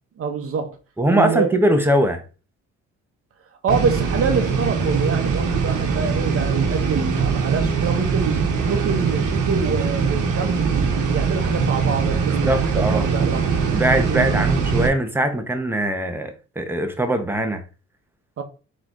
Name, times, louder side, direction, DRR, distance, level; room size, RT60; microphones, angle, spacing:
voice 1, 0.2-0.8 1.1-1.6 3.6-13.5 14.1-14.4 18.4-18.5, right 5 dB, 50° right, 1.0 m, -26 dB
voice 2, 1.0-2.2 12.3-13.1 13.7-17.6, right 1 dB, 5° right, 0.8 m, -21 dB
sound 1, 3.7-14.9, right 5 dB, 85° right, 1.0 m, -22 dB
3.9 x 3.1 x 3.7 m
cardioid pair, 90°, 30 cm